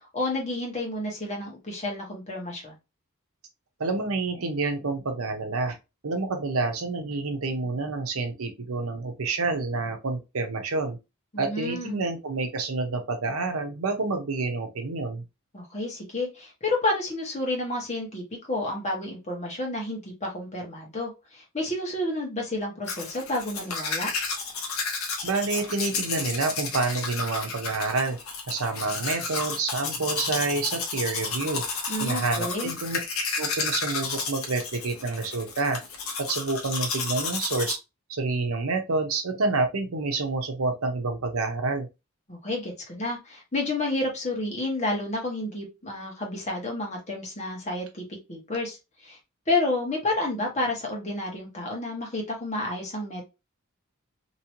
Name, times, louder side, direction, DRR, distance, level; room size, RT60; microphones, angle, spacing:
voice 1, 0.1-2.7 11.3-12.0 15.5-18.2 18.5-24.1 31.9-32.7 42.3-48.0 48.3-48.8 49.0-49.2 49.5-53.2, left 2 dB, 35° left, 1.4 m, -30 dB
voice 2, 3.8-5.8 6.0-11.0 11.4-15.2 25.2-28.2 28.5-31.6 32.0-33.0 33.4-35.8 36.2-37.8 38.1-41.9, right 3 dB, 80° right, 0.8 m, -28 dB
Domestic sounds home sounds, 22.9-37.7, left 4 dB, 85° left, 0.9 m, -32 dB
3.0 x 2.8 x 2.9 m
head